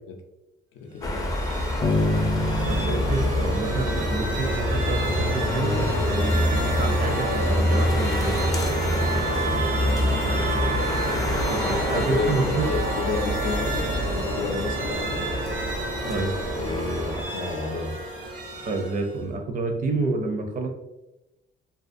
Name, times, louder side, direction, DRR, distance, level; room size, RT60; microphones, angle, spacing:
voice 1, 0.7-1.4 9.6-10.6 11.6-11.7 11.9-15.3 16.6-17.9, left 4 dB, 85° left, 4 dB, 0.4 m, -32 dB
sound 1, 1.0-17.2, left 1 dB, 20° left, 0.4 m, -27 dB
sound 2, 1.0-19.2, right 2 dB, 75° right, 0.8 m, -30 dB
sound 3, 1.8-4.8, left 1 dB, 50° left, 0.7 m, -28 dB
voice 2, 2.7-8.4 11.5-12.7 16.1-16.3 18.7-20.7, right 3 dB, 45° right, 4 dB, 0.5 m, -28 dB
2.4 x 2.3 x 2.5 m, 0.97 s
cardioid pair, 90°, 20 cm